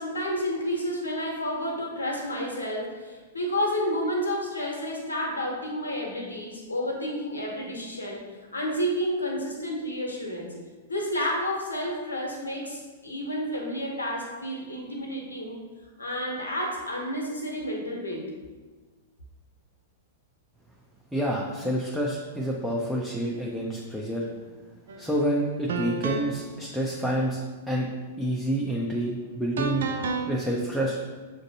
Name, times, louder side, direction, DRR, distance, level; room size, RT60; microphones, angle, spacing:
voice 1, 0.0-8.2 8.5-10.5 10.9-15.6 16.0-18.3, equal, 85° left, -1 dB, 0.7 m, -30 dB
voice 2, 21.1-24.2 25.0-27.4 27.7-27.9 28.2-29.9 30.3-31.0, right 1 dB, ahead, -3 dB, 0.5 m, -28 dB
sound 1, 24.9-25.1 25.7-26.5 29.6-30.3, right 4 dB, 70° right, 0.3 m, -30 dB
6.0 x 2.6 x 2.7 m, 1.4 s
hypercardioid pair, 105°, 0 cm